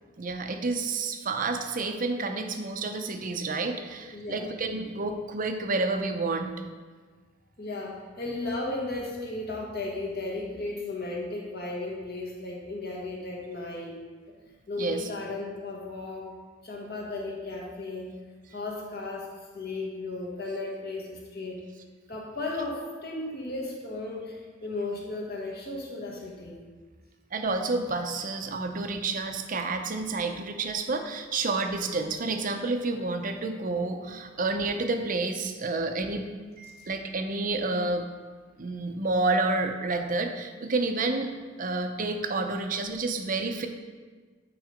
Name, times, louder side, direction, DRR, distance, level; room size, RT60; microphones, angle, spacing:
voice 1, 0.2-6.5 14.8-15.1 27.3-36.2 36.6-38.1 38.6-41.3 41.6-43.7, right 3 dB, 45° right, 6 dB, 0.6 m, -29 dB
voice 2, 4.1-4.5 7.6-14.0 14.7-16.3 16.6-18.1 18.5-19.3 19.5-21.6 22.1-26.6 36.6-36.7, left 2 dB, 55° left, -2 dB, 1.6 m, -35 dB
9.0 x 3.9 x 5.1 m, 1.5 s
head